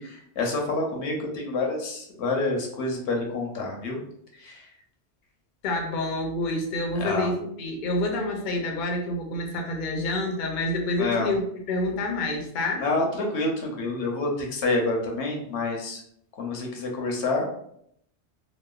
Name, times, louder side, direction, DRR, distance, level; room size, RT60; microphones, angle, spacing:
voice 1, 0.0-4.0 4.4-4.6 7.0-7.3 11.0-11.3 12.8-16.0 16.4-17.5, left 2 dB, 75° left, 1 dB, 0.9 m, -28 dB
voice 2, 5.6-12.8, left 2 dB, 55° left, 1 dB, 0.6 m, -28 dB
2.9 x 2.1 x 2.3 m, 0.70 s
omnidirectional pair, 1.2 m